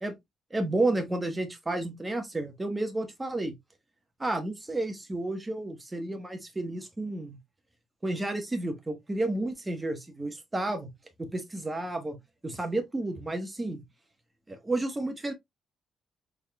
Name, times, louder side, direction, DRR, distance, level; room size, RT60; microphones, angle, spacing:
voice 1, 0.5-3.5 4.2-7.4 8.0-10.9 11.2-12.2 12.4-13.8 14.5-15.3, right 2 dB, 20° right, 1.2 m, -31 dB
4.1 x 3.7 x 2.3 m
cardioid pair, 90°, 0 cm